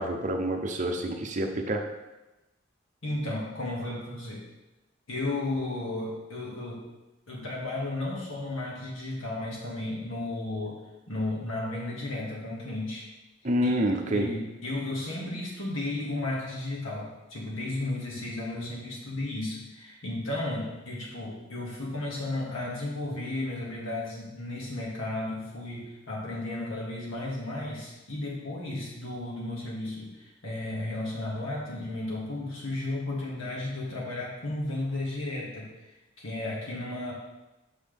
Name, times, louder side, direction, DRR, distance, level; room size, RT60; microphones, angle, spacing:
voice 1, 0.0-1.8 13.4-14.3, right 1 dB, 40° right, 4 dB, 0.7 m, -27 dB
voice 2, 3.0-4.4 5.1-6.8 7.3-10.8 11.1-13.1 13.6-37.1, left 2 dB, 85° left, -4 dB, 2.0 m, -34 dB
6.3 x 5.9 x 3.5 m, 1.0 s
head